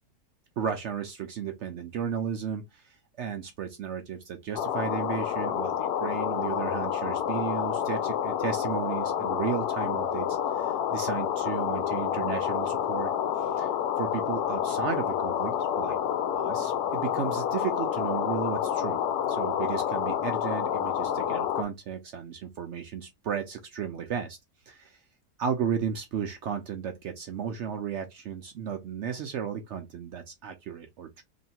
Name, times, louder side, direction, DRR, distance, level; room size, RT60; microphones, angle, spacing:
voice 1, 0.6-13.1 13.4-13.7 14.0-16.0 16.3-19.0 19.3-24.4 24.7-25.0 25.4-31.2, right 7 dB, 80° right, 0.6 m, -34 dB
sound 1, 4.5-21.6, left 9 dB, 75° left, 1.1 m, -29 dB
3.0 x 2.7 x 4.2 m
omnidirectional pair, 1.8 m